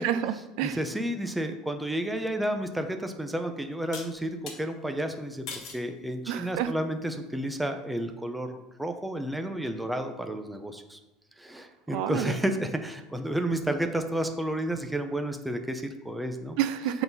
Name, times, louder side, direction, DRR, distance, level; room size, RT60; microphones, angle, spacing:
voice 1, 0.0-0.8 6.3-6.7 11.9-12.4 16.6-17.0, right 11 dB, 60° right, 12 dB, 0.5 m, -29 dB
voice 2, 0.6-11.0 11.4-16.6, right 1 dB, 5° right, 6 dB, 0.6 m, -31 dB
sound 1, 2.6-2.7 3.9-4.6 5.5-5.9 6.5-6.9, left 4 dB, 40° left, 1.7 m, -40 dB
8.4 x 3.9 x 5.3 m, 1.1 s
cardioid pair, 170°, 0 cm